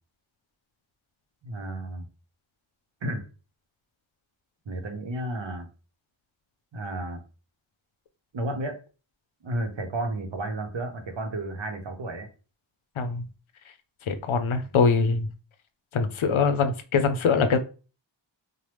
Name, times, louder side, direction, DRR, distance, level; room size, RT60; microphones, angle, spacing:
voice 1, 1.4-2.1 3.0-3.2 4.6-5.7 6.7-7.2 8.3-8.8 9.4-12.3, right 1 dB, 70° right, 4 dB, 0.8 m, -32 dB
voice 2, 14.1-15.3 15.9-17.6, left 5 dB, 90° left, 8 dB, 0.5 m, -23 dB
3.0 x 2.1 x 3.2 m, 0.34 s
wide cardioid pair, 55°, 46 cm